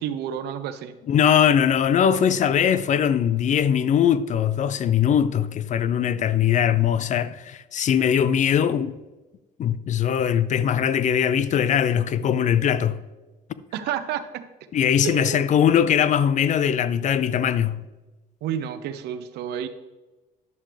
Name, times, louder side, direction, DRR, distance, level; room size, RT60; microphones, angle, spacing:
voice 1, 0.0-1.0 13.7-14.4 15.0-15.5 18.4-19.7, right 9 dB, 80° right, 0.8 m, -30 dB
voice 2, 1.1-8.9 9.6-13.0 14.7-17.8, left 9 dB, 45° left, 0.5 m, -21 dB
11.0 x 7.3 x 3.3 m
cardioid pair, 110°, 17 cm